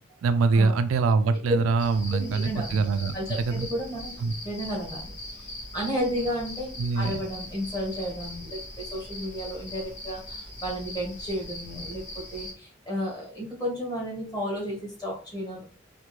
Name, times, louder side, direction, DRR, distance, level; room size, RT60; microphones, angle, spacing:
voice 1, 0.2-3.1 3.4-3.7 4.2-4.3 6.8-7.2, right 4 dB, 85° right, 11 dB, 0.3 m, -24 dB
sound 1, 1.8-12.5, left 1 dB, 60° left, 1.4 m, -40 dB
voice 2, 2.1-2.8 3.1-4.2 4.4-5.5 5.7-15.7, equal, 20° left, -2 dB, 1.2 m, -32 dB
3.3 x 2.1 x 3.0 m, 0.38 s
head